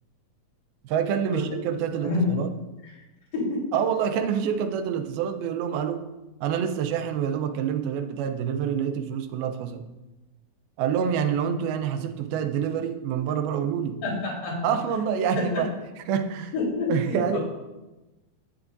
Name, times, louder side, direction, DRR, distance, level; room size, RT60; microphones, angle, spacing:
voice 1, 0.8-2.5 3.7-6.1 6.4-9.9 10.8-14.0 14.6-15.7 16.0-16.5 16.9-17.4, right 8 dB, 85° right, 8 dB, 2.6 m, -27 dB
voice 2, 3.3-3.7 14.0-14.7 15.4-15.7 16.5-17.4, left 2 dB, 70° left, -4 dB, 5.7 m, -28 dB
16.0 x 9.7 x 2.6 m, 1.1 s
omnidirectional pair, 4.2 m